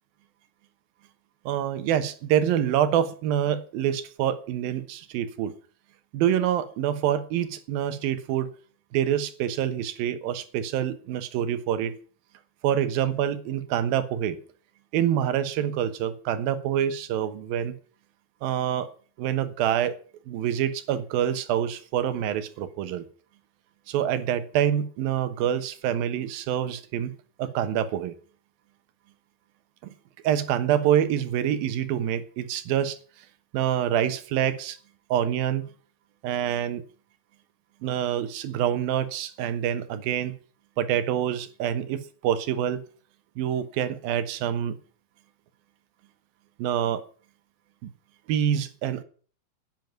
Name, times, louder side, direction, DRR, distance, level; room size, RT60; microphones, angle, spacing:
voice 1, 1.5-5.5 6.1-8.5 8.9-11.9 12.6-14.4 14.9-17.8 18.4-18.9 19.2-19.9 20.3-23.1 23.9-28.1 29.8-29.9 30.2-33.0 33.5-34.8 35.1-35.7 36.2-36.8 37.8-40.4 40.8-42.8 43.4-44.8 46.6-47.0 47.8-47.9 48.3-49.0, right 10 dB, 75° right, 12 dB, 2.9 m, -26 dB
10.5 x 9.3 x 9.3 m, 0.43 s
omnidirectional pair, 4.4 m